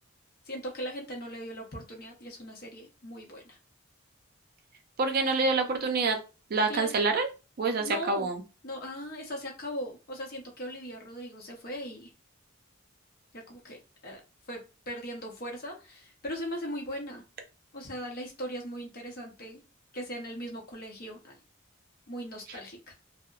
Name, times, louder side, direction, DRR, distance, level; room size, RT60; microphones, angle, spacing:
voice 1, 0.5-3.6 6.7-6.9 7.8-8.3 8.6-12.1 13.3-14.2 14.5-14.6 14.9-17.2 17.7-19.6 19.9-21.3 22.1-22.9, equal, 45° left, 0 dB, 0.7 m, -39 dB
voice 2, 5.0-6.2 6.5-7.3 7.6-8.4, right 3 dB, 50° right, 4 dB, 0.4 m, -26 dB
2.7 x 2.0 x 2.3 m, 0.30 s
head